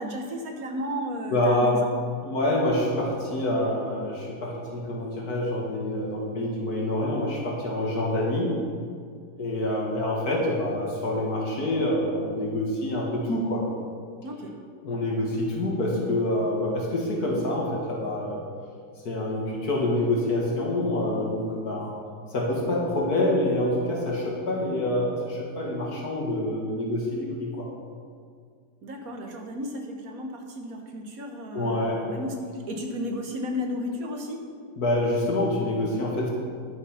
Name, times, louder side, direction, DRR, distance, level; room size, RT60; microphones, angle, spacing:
voice 1, 0.0-1.9 14.2-14.6 28.8-34.4, left 1 dB, 55° right, 3 dB, 1.6 m, -34 dB
voice 2, 1.3-1.8 2.2-8.6 9.4-13.6 14.8-18.4 19.0-21.9 22.3-27.7 31.5-32.0 34.8-36.3, left 1 dB, 60° left, -2 dB, 2.2 m, -26 dB
10.5 x 7.5 x 5.7 m, 2.2 s
omnidirectional pair, 1.9 m